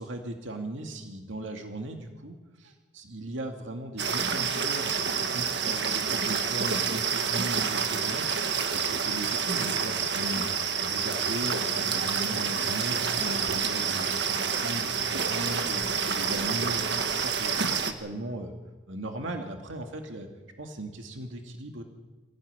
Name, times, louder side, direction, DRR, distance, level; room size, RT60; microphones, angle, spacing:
voice 1, 0.0-10.5 10.8-15.8 16.1-18.5 18.9-20.3 20.6-21.8, right 1 dB, 80° right, 4 dB, 2.3 m, -38 dB
sound 1, 4.0-17.9, right 6 dB, 60° right, 1.6 m, -28 dB
23.0 x 16.0 x 9.7 m, 1.3 s
head